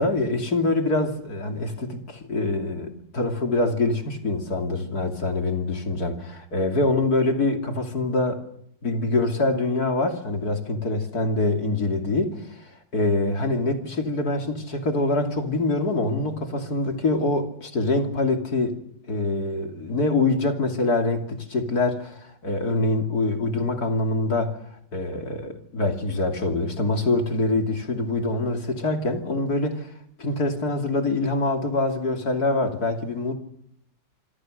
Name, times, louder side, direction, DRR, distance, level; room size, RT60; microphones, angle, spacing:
voice 1, 0.0-8.4 8.8-18.8 19.1-24.6 24.9-29.9 30.2-33.3, left 2 dB, 55° left, 3.3 m, -25 dB
26.5 x 25.0 x 6.5 m
omnidirectional pair, 1.9 m